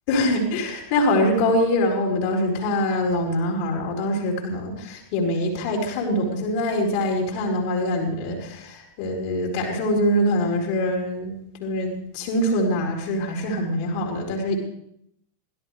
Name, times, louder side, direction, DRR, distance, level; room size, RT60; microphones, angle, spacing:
voice 1, 0.1-14.6, left 1 dB, 45° left, 0 dB, 4.4 m, -24 dB
23.0 x 16.5 x 3.4 m, 0.71 s
figure-of-eight pair, 90°, 0 cm